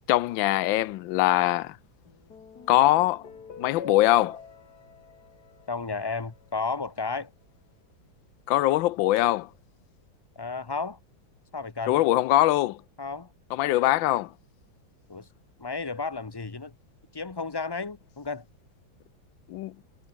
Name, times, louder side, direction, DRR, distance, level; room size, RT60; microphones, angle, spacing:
voice 1, 0.1-1.8 2.7-3.2 3.6-4.4 8.5-9.5 11.9-12.8 13.5-14.3 19.5-19.7, left 15 dB, 85° left, 1.4 m, -22 dB
sound 1, 2.0-6.6, left 6 dB, 55° left, 2.5 m, -45 dB
voice 2, 5.7-7.3 10.4-11.0 11.5-12.0 13.0-13.3 15.1-15.3 15.6-16.7 17.1-18.4, left 4 dB, 20° left, 0.6 m, -33 dB
omnidirectional pair, 2.1 m